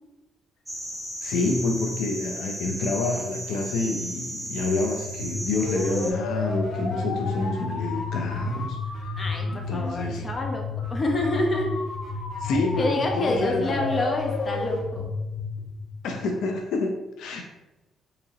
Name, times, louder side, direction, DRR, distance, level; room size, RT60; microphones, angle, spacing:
sound 1, 0.7-6.1, equal, 5° right, 1.0 m, -35 dB
voice 1, 1.2-9.2 9.5-10.3 12.4-13.9 16.0-17.4, left 3 dB, 85° left, 3 dB, 0.4 m, -28 dB
sound 2, 5.1-16.4, left 3 dB, 65° left, 1.0 m, -31 dB
voice 2, 9.2-11.8 12.5-15.1, left 2 dB, 35° left, 1 dB, 0.7 m, -28 dB
3.9 x 2.8 x 2.7 m, 1.0 s
cardioid pair, 90°, 0 cm